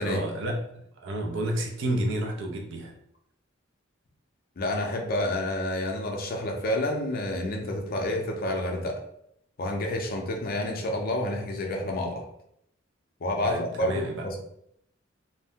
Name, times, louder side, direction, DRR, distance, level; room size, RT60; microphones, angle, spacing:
voice 1, 0.0-2.9 13.4-14.3, right 1 dB, 65° right, 2 dB, 0.5 m, -31 dB
voice 2, 4.6-9.0 9.6-12.2 13.2-14.4, left 1 dB, 45° left, 1 dB, 0.5 m, -29 dB
2.5 x 2.1 x 3.5 m, 0.72 s
head